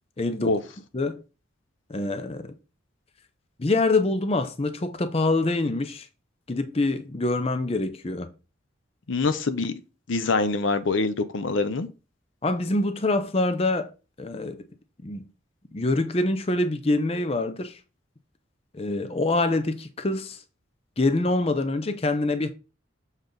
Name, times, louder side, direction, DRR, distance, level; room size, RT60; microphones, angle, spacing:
voice 1, 0.2-0.6 0.9-1.2 1.9-2.5 3.6-6.1 6.5-8.3 12.4-13.9 14.2-14.6 15.0-15.2 15.7-17.8 18.7-20.4 21.0-22.5, left 2 dB, 30° left, 0.6 m, -25 dB
voice 2, 9.1-9.7 10.1-11.9, left 3 dB, 75° left, 0.7 m, -24 dB
7.0 x 4.0 x 3.8 m
head